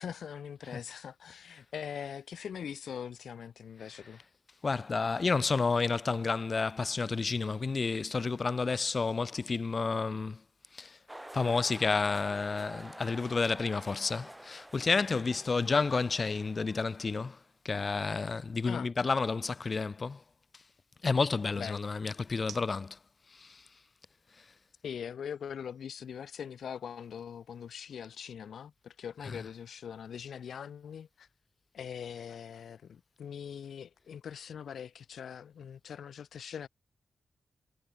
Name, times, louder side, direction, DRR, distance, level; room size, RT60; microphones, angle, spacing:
voice 1, 0.0-4.2 15.5-15.8 18.6-18.9 21.5-21.9 24.8-31.3 31.7-36.7, left 8 dB, 85° left, 1.0 m, -42 dB
voice 2, 4.6-10.4 10.7-11.0 11.3-17.4 17.6-20.2 21.0-23.0 23.4-23.6 29.2-29.5, left 4 dB, 45° left, 0.3 m, -30 dB
sound 1, 11.1-17.4, right 1 dB, 10° right, 0.8 m, -49 dB
sound 2, 12.7-26.9, right 7 dB, 85° right, 6.1 m, -61 dB
cardioid pair, 85°, 0 cm